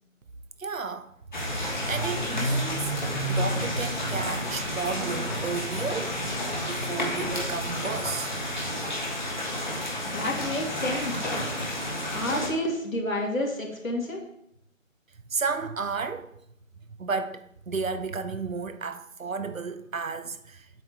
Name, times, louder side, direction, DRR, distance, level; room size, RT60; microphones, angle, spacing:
voice 1, 0.6-1.1 1.4-2.9 3.3-6.3 6.6-8.7 15.3-16.3 16.9-20.7, right 4 dB, 80° right, 0.9 m, -33 dB
sound 1, 1.3-12.5, equal, 35° left, 1.5 m, -30 dB
voice 2, 10.0-11.3 12.1-14.2, left 1 dB, 75° left, 2.6 m, -29 dB
7.9 x 7.2 x 3.1 m
figure-of-eight pair, 170°, 40 cm